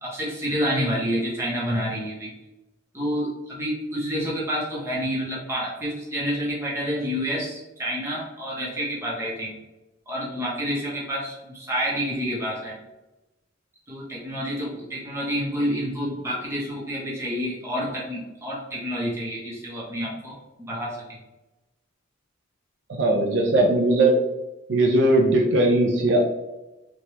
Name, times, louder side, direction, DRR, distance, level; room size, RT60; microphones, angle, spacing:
voice 1, 0.0-2.3 2.9-9.6 10.1-12.8 13.9-21.2, equal, 15° right, -6 dB, 0.7 m, -28 dB
voice 2, 22.9-24.1 24.7-26.3, right 2 dB, 60° right, 0 dB, 0.4 m, -19 dB
3.2 x 2.2 x 2.8 m, 1.0 s
head